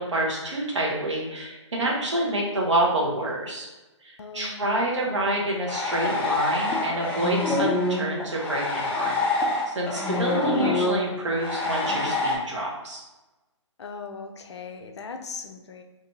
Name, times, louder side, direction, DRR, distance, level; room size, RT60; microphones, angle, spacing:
voice 1, 0.0-3.7 4.0-13.0, right 1 dB, 70° right, -3 dB, 1.2 m, -28 dB
voice 2, 4.2-4.6 13.8-15.8, left 5 dB, 60° left, 5 dB, 0.5 m, -39 dB
sound 1, 5.7-12.4, left 2 dB, 10° left, 0.4 m, -26 dB
2.9 x 2.6 x 3.5 m, 1.1 s
figure-of-eight pair, 130°, 16 cm